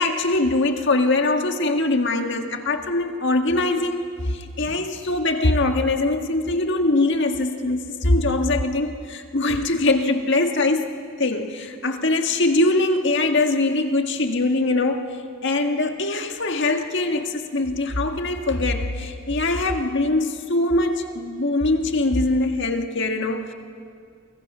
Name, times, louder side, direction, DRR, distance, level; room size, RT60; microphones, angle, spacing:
voice 1, 0.0-10.9 11.2-15.2 15.4-23.5, left 2 dB, 60° left, 5 dB, 1.8 m, -22 dB
30.0 x 25.5 x 6.2 m, 2.2 s
head